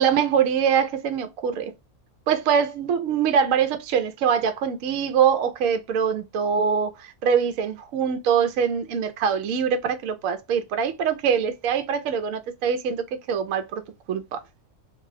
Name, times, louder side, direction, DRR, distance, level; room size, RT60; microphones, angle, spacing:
voice 1, 0.0-1.7 2.3-13.8 14.1-14.4, right 7 dB, 70° right, 1.0 m, -23 dB
2.9 x 2.7 x 2.5 m
omnidirectional pair, 1.5 m